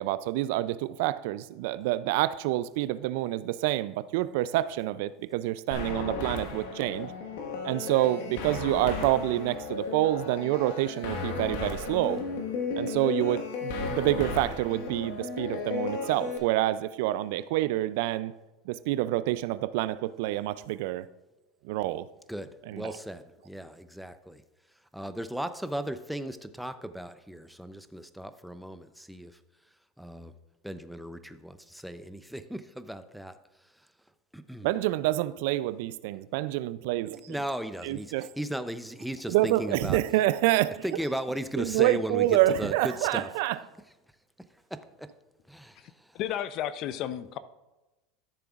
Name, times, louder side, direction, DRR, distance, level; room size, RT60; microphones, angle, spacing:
voice 1, 0.0-7.1 7.6-12.3 12.8-18.3 18.7-21.1 21.6-22.1 22.7-22.9 34.6-37.4 37.8-38.3 39.3-40.8 41.6-43.6, right 15 dB, 70° right, 0.3 m, -27 dB
sound 1, 5.7-16.4, left 4 dB, 75° left, 1.4 m, -34 dB
voice 2, 22.3-24.4 24.9-29.3 30.0-30.3 30.6-33.3 34.3-34.7 37.3-40.0 40.8-43.3 44.7-45.1 45.5-45.7, right 1 dB, ahead, 0.6 m, -36 dB
voice 3, 45.8-47.4, left 11 dB, 55° left, 0.5 m, -34 dB
13.0 x 6.9 x 2.4 m
hypercardioid pair, 100°, 0 cm